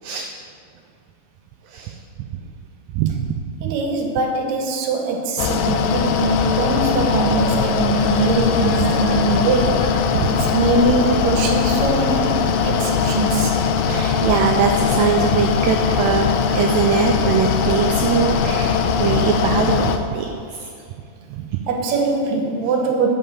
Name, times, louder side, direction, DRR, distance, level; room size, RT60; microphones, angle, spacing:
voice 1, 1.7-2.3 2.9-3.4 3.6-3.7 7.7-7.8 8.6-9.3 10.1-10.3 13.9-20.7 21.3-21.6, right 7 dB, 80° right, 4 dB, 2.1 m, -22 dB
voice 2, 3.6-13.6 21.7-23.1, right 3 dB, 60° right, 2 dB, 2.0 m, -22 dB
Mechanical fan, 5.4-20.0, left 6 dB, 80° left, 2.2 m, -20 dB
11.0 x 5.4 x 8.0 m, 2.4 s
omnidirectional pair, 4.2 m